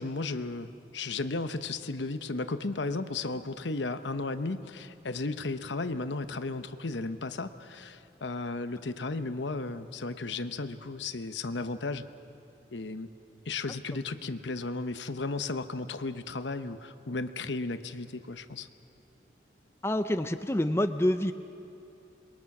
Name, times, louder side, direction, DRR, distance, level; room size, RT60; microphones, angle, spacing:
voice 1, 0.0-12.0 12.7-13.1 13.5-18.7, left 3 dB, 80° left, 10 dB, 0.9 m, -34 dB
voice 2, 19.8-21.3, left 1 dB, 15° left, 8 dB, 0.6 m, -27 dB
27.0 x 22.5 x 6.1 m, 2.8 s
head